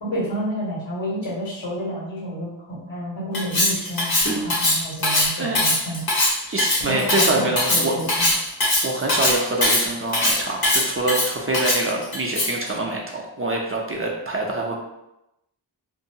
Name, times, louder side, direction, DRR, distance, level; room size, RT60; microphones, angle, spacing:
voice 1, 0.0-6.0 6.8-8.3, right 1 dB, 75° left, -7 dB, 1.4 m, -30 dB
Cutlery silverware, 3.3-12.7, left 1 dB, 50° left, 0.9 m, -21 dB
voice 2, 6.5-8.0 8.8-14.8, right 2 dB, 30° right, -2 dB, 0.4 m, -25 dB
2.6 x 2.2 x 2.7 m, 0.88 s
wide cardioid pair, 70°, 47 cm